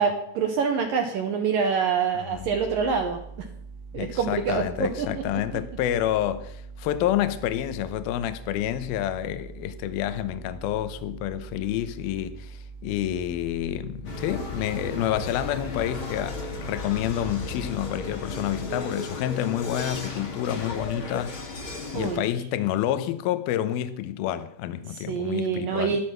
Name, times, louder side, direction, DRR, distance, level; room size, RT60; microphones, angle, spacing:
voice 1, 0.0-3.2 3.9-5.1 5.3-5.4 21.9-22.2 24.9-26.0, right 6 dB, 70° right, 2.2 m, -26 dB
voice 2, 2.1-2.6 3.9-21.6 21.9-26.0, left 12 dB, 75° left, 2.2 m, -29 dB
sound 1, 2.3-18.7, right 4 dB, 20° right, 1.3 m, -43 dB
sound 2, 14.0-22.2, left 3 dB, 40° left, 2.0 m, -35 dB
13.0 x 12.0 x 5.8 m
omnidirectional pair, 5.5 m